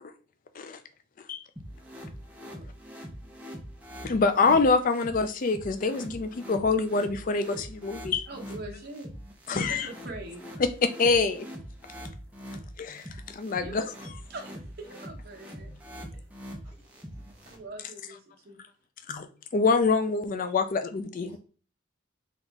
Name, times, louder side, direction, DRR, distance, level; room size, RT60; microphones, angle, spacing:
sound 1, 1.6-17.5, equal, 10° right, 0.7 m, -43 dB
voice 1, 4.0-8.3 9.5-9.9 10.6-11.5 12.8-13.0 13.3-13.8 19.1-19.3 19.5-21.4, left 4 dB, 45° left, 0.4 m, -25 dB
voice 2, 8.3-9.1 9.5-10.4 13.6-13.9 14.3-15.7 16.1-16.2 17.5-18.6 20.5-20.6, right 2 dB, 50° right, 1.0 m, -43 dB
voice 3, 16.6-17.6 21.2-21.4, right 1 dB, 25° right, 1.2 m, -58 dB
3.9 x 3.0 x 3.5 m
head